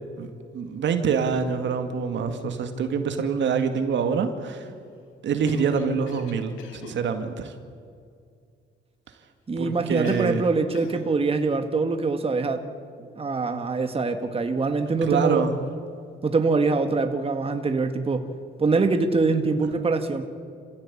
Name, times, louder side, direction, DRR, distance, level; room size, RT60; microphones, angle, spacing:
voice 1, 0.5-4.7 5.2-7.5 9.6-10.5 15.0-15.6, right 6 dB, 70° right, 7 dB, 2.1 m, -25 dB
Cough, 5.5-7.0 10.0-10.5 10.8-11.1, left 4 dB, 90° left, 2.5 m, -41 dB
voice 2, 9.5-12.6 13.2-15.4 16.2-18.3 18.6-20.2, right 3 dB, 30° right, 7 dB, 1.8 m, -24 dB
27.0 x 16.5 x 8.6 m, 2.3 s
cardioid pair, 90°, 20 cm